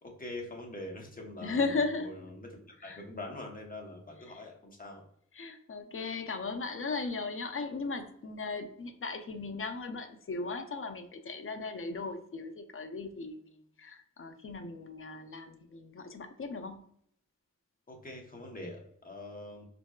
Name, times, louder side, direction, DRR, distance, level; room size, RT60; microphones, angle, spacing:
voice 1, 0.0-1.6 2.0-5.0 17.9-19.7, left 2 dB, 30° left, 1 dB, 0.9 m, -44 dB
voice 2, 1.4-2.1 2.8-3.0 4.3-4.4 5.3-16.8, left 3 dB, 45° left, 7 dB, 0.5 m, -37 dB
4.0 x 2.2 x 2.3 m, 0.68 s
cardioid pair, 55°, 31 cm